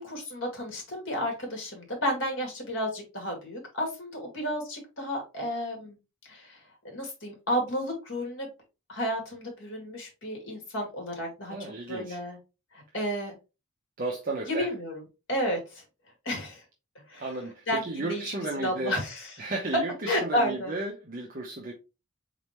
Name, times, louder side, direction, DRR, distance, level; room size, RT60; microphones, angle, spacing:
voice 1, 0.0-6.0 6.2-8.5 8.9-12.4 12.7-13.3 14.5-15.0 15.3-15.8 16.2-16.6 17.1-17.3 17.7-18.2 18.6-19.4 20.0-20.7, equal, 60° left, 2.2 m, -32 dB
voice 2, 11.5-12.2 14.0-14.7 17.2-19.0 19.4-21.7, right 2 dB, 40° right, 0.8 m, -34 dB
4.2 x 3.8 x 3.1 m
head